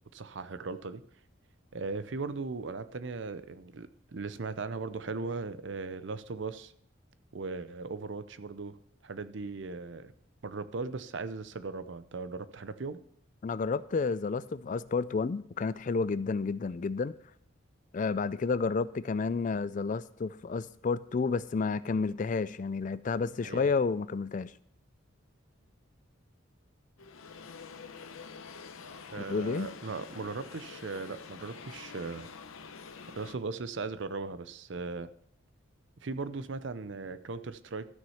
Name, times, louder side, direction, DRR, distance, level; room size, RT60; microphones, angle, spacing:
voice 1, 0.1-1.0 1.7-6.7 7.3-8.8 9.0-10.1 10.4-13.0 23.4-23.7 29.1-32.3 33.1-35.1 36.0-37.9, right 4 dB, 60° right, 0.6 m, -38 dB
voice 2, 13.4-17.1 17.9-24.5 29.3-29.7, left 4 dB, 40° left, 0.3 m, -30 dB
sound 1, 27.0-33.4, left 5 dB, 85° left, 0.8 m, -47 dB
13.0 x 6.2 x 5.7 m
head